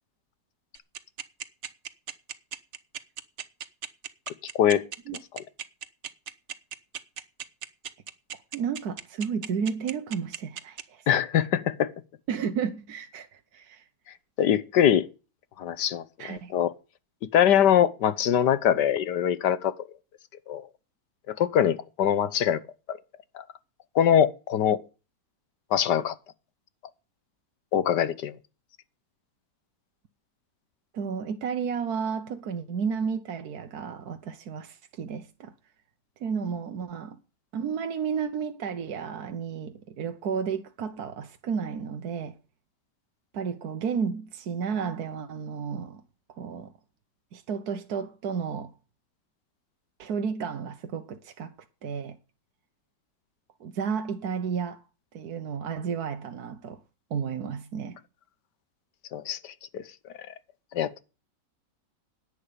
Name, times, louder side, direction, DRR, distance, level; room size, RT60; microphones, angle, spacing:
sound 1, 0.7-10.8, right 8 dB, 50° right, 1.0 m, -36 dB
voice 1, 8.5-11.1 12.3-13.9 16.2-16.5 30.9-35.5 36.2-37.2 37.5-42.4 43.3-46.0 46.4-46.7 47.3-48.7 50.0-51.5 51.8-52.2 53.6-54.8 55.1-56.8 57.1-58.0, right 6 dB, 65° right, 1.4 m, -32 dB
voice 2, 11.1-11.9 14.4-15.1 15.6-16.7 17.3-19.7 20.5-20.6 21.4-22.6 22.9-23.0 23.9-24.8 25.7-26.1 27.7-28.3 59.1-59.4 59.7-59.8 60.7-61.0, left 9 dB, 75° left, 1.6 m, -23 dB
10.5 x 10.0 x 6.9 m
omnidirectional pair, 1.9 m